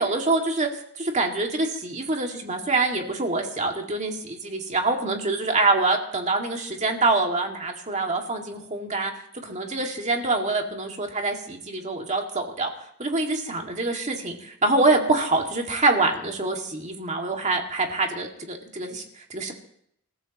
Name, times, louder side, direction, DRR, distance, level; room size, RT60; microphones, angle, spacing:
voice 1, 0.0-12.7 13.0-19.5, right 3 dB, 30° right, 2 dB, 2.2 m, -25 dB
28.0 x 14.5 x 3.0 m, 0.70 s
head